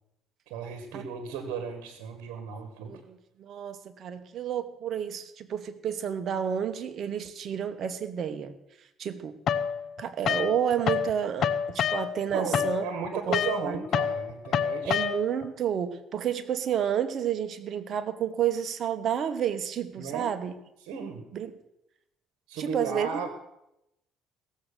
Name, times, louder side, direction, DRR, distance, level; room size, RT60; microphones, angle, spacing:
voice 1, 0.5-2.9 12.3-15.0 20.0-20.3 20.8-21.2 22.5-23.3, right 6 dB, 85° right, 7 dB, 1.5 m, -35 dB
voice 2, 2.8-8.5 9.0-9.4 10.0-12.8 13.3-13.8 14.9-20.5 21.3-21.5 22.6-23.1, right 9 dB, 60° right, 11 dB, 1.2 m, -30 dB
sound 1, 9.5-11.1 11.4-15.5, left 8 dB, 60° left, 0.8 m, -28 dB
17.0 x 7.5 x 6.7 m, 0.85 s
cardioid pair, 85°, 0 cm